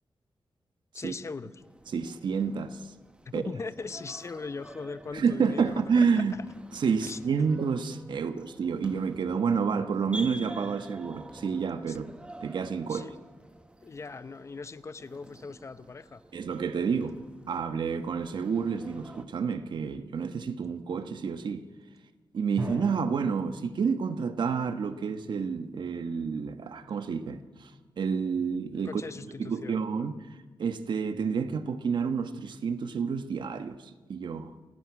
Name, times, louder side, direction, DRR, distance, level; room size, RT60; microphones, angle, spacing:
voice 1, 0.9-1.6 3.3-6.4 7.0-7.2 11.9-12.0 12.9-13.1 13.8-16.2 28.8-29.8, left 4 dB, 35° left, 0.7 m, -40 dB
sound 1, 1.6-19.3, right 1 dB, 15° right, 1.0 m, -49 dB
voice 2, 1.9-2.8 3.3-3.4 5.1-6.3 6.7-12.1 12.4-13.1 16.3-17.2 17.5-21.7 22.3-27.7 28.0-29.0 29.4-30.2 30.6-33.8 34.1-34.5, right 6 dB, 70° right, 1.2 m, -29 dB
Drum, 22.6-24.5, right 2 dB, 35° right, 7.3 m, -39 dB
28.5 x 11.0 x 9.5 m
wide cardioid pair, 140°, 8 cm